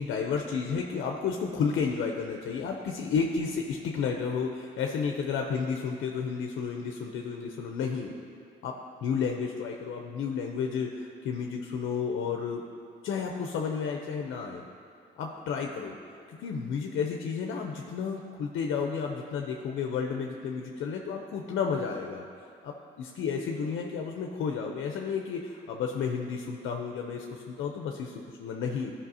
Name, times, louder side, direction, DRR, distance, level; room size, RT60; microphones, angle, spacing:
voice 1, 0.0-8.1 8.6-12.6 13.0-14.7 15.2-16.0 16.3-22.3 22.6-28.9, left 6 dB, 75° left, 2 dB, 0.6 m, -32 dB
13.0 x 5.6 x 2.8 m, 2.6 s
cardioid pair, 90°, 20 cm